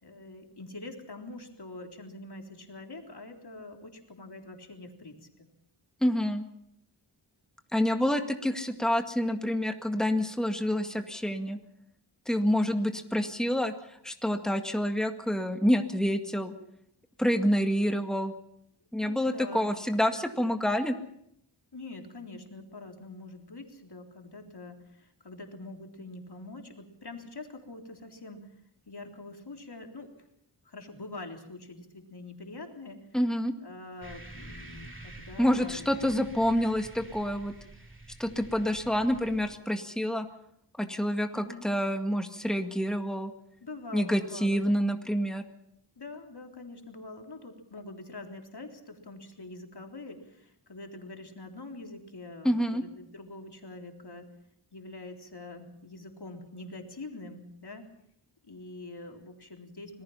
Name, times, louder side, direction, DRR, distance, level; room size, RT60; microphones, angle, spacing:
voice 1, 0.0-5.5 19.0-19.7 21.7-28.5 28.9-30.3 30.6-33.1 33.6-36.1 41.3-41.7 43.6-44.8 46.0-54.3 54.7-57.9 58.4-60.0, left 2 dB, 55° left, 3 dB, 3.8 m, -44 dB
voice 2, 6.0-6.4 7.7-11.6 12.3-13.7 14.0-16.5 17.2-18.3 18.9-20.9 33.1-33.5 35.4-37.5 38.2-40.3 40.8-43.3 43.9-45.4 52.4-52.8, equal, ahead, 5 dB, 2.0 m, -27 dB
sound 1, 34.0-39.6, right 2 dB, 25° right, 2.5 m, -48 dB
26.5 x 19.5 x 5.8 m, 0.71 s
wide cardioid pair, 75°, 46 cm